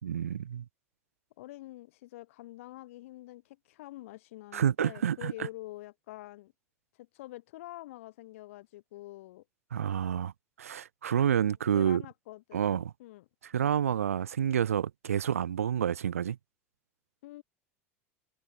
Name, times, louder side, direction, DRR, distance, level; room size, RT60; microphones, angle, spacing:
voice 1, 0.0-0.6 4.5-5.3 9.7-10.3 10.6-12.0 12.5-12.9 13.4-16.4, right 9 dB, 85° right, 3.1 m, -29 dB
voice 2, 1.4-6.5 7.0-9.4 11.5-13.3 17.2-17.4, left 17 dB, 70° left, 5.7 m, -46 dB
hypercardioid pair, 80°, 7 cm